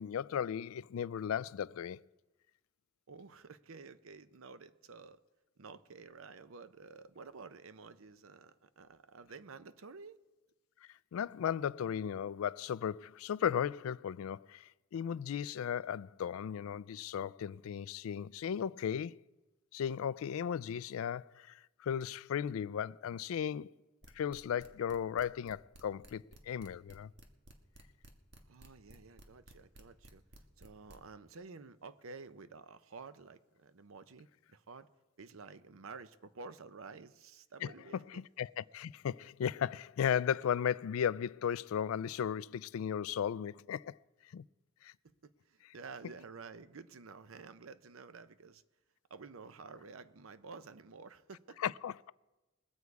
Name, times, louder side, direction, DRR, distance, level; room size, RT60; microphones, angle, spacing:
voice 1, 0.0-2.0 11.1-19.2 19.7-23.7 24.2-27.1 37.6-37.7 38.1-44.0 44.3-44.5 44.8-44.9 51.6-52.1, left 8 dB, 85° left, 0.3 m, -36 dB
voice 2, 3.1-5.2 5.6-10.2 28.5-30.2 30.6-34.9 35.2-38.2 45.0-48.6 49.1-51.6, right 4 dB, 80° right, 0.7 m, -51 dB
sound 1, 24.0-31.0, right 1 dB, 60° right, 1.5 m, -56 dB
22.0 x 8.2 x 4.7 m
head